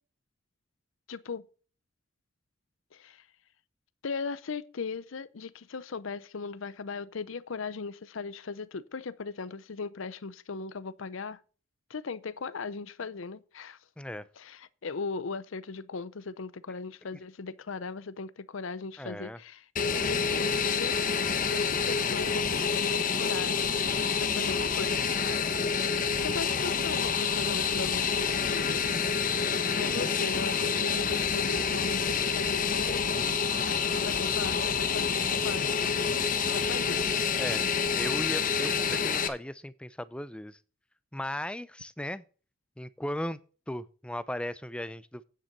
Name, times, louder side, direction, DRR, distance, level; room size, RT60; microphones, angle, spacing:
voice 1, 1.1-1.4 2.9-3.2 4.0-11.4 11.9-13.8 14.4-21.0 21.4-23.8 24.1-25.5 25.9-28.8 29.8-33.0 33.7-35.6 36.5-37.0, left 4 dB, 70° left, 0.6 m, -38 dB
voice 2, 14.0-14.3 19.0-19.4 29.8-30.1 37.4-37.6 37.9-40.6 41.1-42.2 42.8-43.4 43.7-45.2, left 1 dB, 5° left, 0.4 m, -37 dB
Fixed-wing aircraft airplane, 19.8-39.3, left 6 dB, 40° left, 1.0 m, -28 dB
9.1 x 7.4 x 5.4 m
head